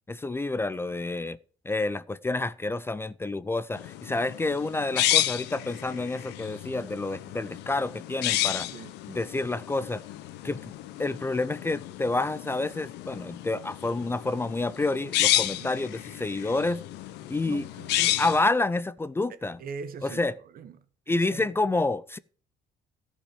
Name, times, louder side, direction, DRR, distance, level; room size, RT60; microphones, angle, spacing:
voice 1, 0.1-1.4 1.6-8.7 9.1-10.0 10.4-10.7 11.0-16.8 17.3-17.7 18.0-19.6 20.0-20.3 21.1-22.2, left 2 dB, 15° left, 0.4 m, -29 dB
sound 1, 3.8-18.4, left 14 dB, 90° left, 0.9 m, -31 dB
voice 2, 17.5-18.1 19.6-20.8 21.1-21.4, right 5 dB, 60° right, 1.4 m, -42 dB
13.5 x 5.3 x 6.8 m
cardioid pair, 110°, 17 cm